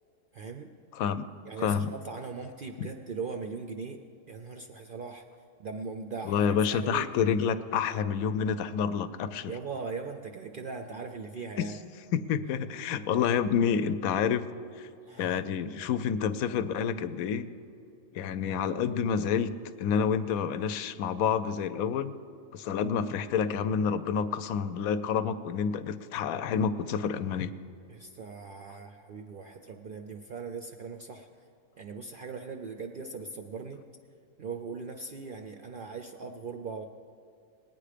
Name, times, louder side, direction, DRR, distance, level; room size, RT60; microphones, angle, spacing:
voice 1, 0.3-0.7 1.5-4.0 4.3-5.2 5.6-7.1 9.5-11.8 15.1-15.4 27.9-31.3 31.8-33.8 34.4-36.8, right 4 dB, 60° right, 4 dB, 0.5 m, -39 dB
voice 2, 0.9-1.3 1.6-1.9 6.2-9.5 11.6-11.7 12.1-14.5 14.8-14.9 15.2-17.5 18.1-22.1 22.5-27.5, left 7 dB, 80° left, 12 dB, 1.0 m, -28 dB
19.0 x 9.2 x 5.0 m, 2.5 s
omnidirectional pair, 1.5 m